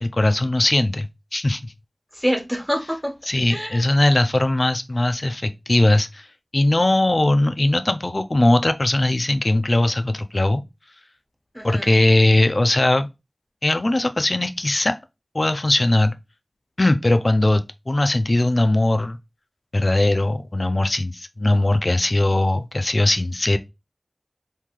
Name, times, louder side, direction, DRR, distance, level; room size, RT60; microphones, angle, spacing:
voice 1, 0.0-1.7 3.3-6.3 6.5-10.6 11.6-13.1 13.6-15.0 15.3-16.1 16.8-19.2 19.7-23.6, left 1 dB, 65° left, 0.4 m, -20 dB
voice 2, 2.1-3.1 3.5-3.9 11.5-11.9, equal, 5° left, 1.1 m, -26 dB
3.7 x 2.7 x 3.0 m
wide cardioid pair, 45°, 0 cm